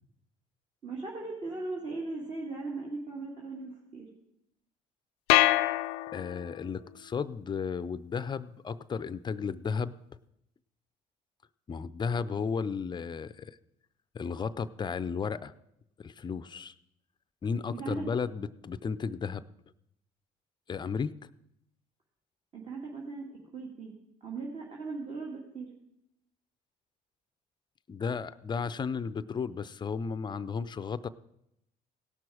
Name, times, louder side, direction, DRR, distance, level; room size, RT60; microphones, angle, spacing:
voice 1, 0.8-4.1 17.7-18.1 22.5-23.9 24.2-25.7, right 3 dB, 40° right, -3 dB, 2.2 m, -38 dB
sound 1, 5.3-6.7, left 17 dB, 90° left, 0.4 m, -25 dB
voice 2, 6.1-9.9 11.7-13.6 14.1-15.5 16.0-16.7 17.4-19.4 20.7-21.1 27.9-31.1, left 5 dB, 25° left, 15 dB, 0.5 m, -34 dB
17.0 x 6.0 x 4.9 m, 0.80 s
supercardioid pair, 75°, 17 cm